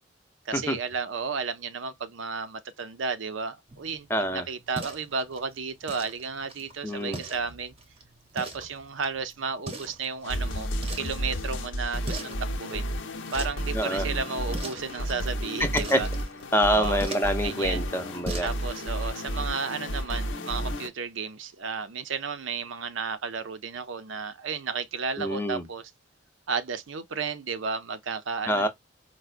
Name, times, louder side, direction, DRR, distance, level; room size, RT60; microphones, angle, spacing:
voice 1, 0.5-7.7 8.3-10.7 11.0-12.9 13.3-16.1 16.7-17.0 17.4-17.8 18.4-25.9 26.5-28.7, right 5 dB, 75° right, 0.5 m, -33 dB
sound 1, 3.7-18.9, right 2 dB, 30° right, 0.7 m, -43 dB
voice 2, 4.1-4.5 6.8-7.2 13.7-14.1 15.6-16.0 16.5-18.5 25.2-25.6 28.5-28.7, equal, 10° left, 0.6 m, -26 dB
sound 2, 10.2-20.9, equal, 75° left, 0.7 m, -32 dB
4.6 x 2.1 x 2.4 m
head